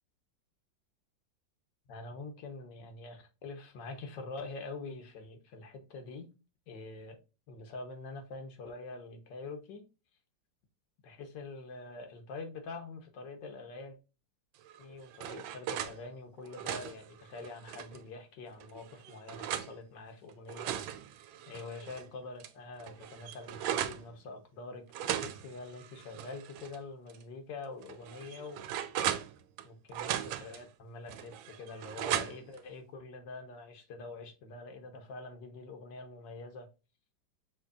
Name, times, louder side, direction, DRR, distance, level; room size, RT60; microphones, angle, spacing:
voice 1, 1.9-6.3 6.7-7.2 7.5-9.8 11.0-14.0 14.8-20.8 21.5-28.6 29.6-36.7, left 3 dB, 70° left, 1.5 m, -45 dB
sound 1, 14.7-16.0 16.4-18.0 18.6-19.7 20.3-22.0 22.4-22.5 22.8-24.0 24.9-26.8 27.1-27.2 27.8-29.6 29.9-30.6 31.1-32.6, right 11 dB, 85° right, 1.3 m, -37 dB
6.6 x 3.0 x 2.3 m
omnidirectional pair, 2.1 m